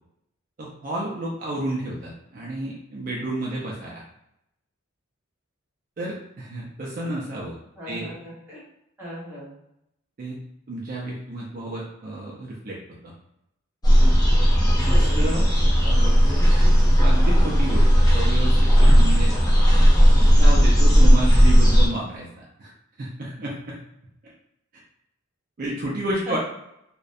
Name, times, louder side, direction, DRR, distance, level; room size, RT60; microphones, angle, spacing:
voice 1, 0.6-4.0 6.0-7.6 7.9-8.1 10.2-10.4 10.7-12.8 13.0-13.1 14.8-15.5 15.8-16.1 17.0-19.3 20.4-22.7 23.0-23.8 24.7-24.8 25.6-26.4, right 1 dB, 40° right, -5 dB, 0.4 m, -31 dB
voice 2, 7.8-8.6 9.0-9.5 14.8-15.3 26.3-26.4, left 1 dB, 10° right, -8 dB, 0.8 m, -37 dB
sound 1, 13.8-21.9, equal, 20° left, 0.6 m, -16 dB
2.3 x 2.1 x 2.6 m, 0.82 s
head